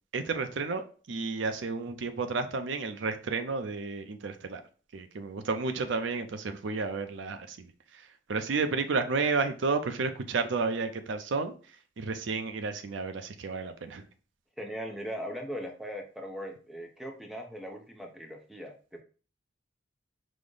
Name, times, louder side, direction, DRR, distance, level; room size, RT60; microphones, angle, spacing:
voice 1, 0.1-4.6 4.9-11.5 12.0-14.0, right 4 dB, 75° right, 8 dB, 0.5 m, -32 dB
voice 2, 14.6-19.0, equal, ahead, 2 dB, 0.5 m, -39 dB
5.0 x 2.0 x 3.7 m, 0.38 s
head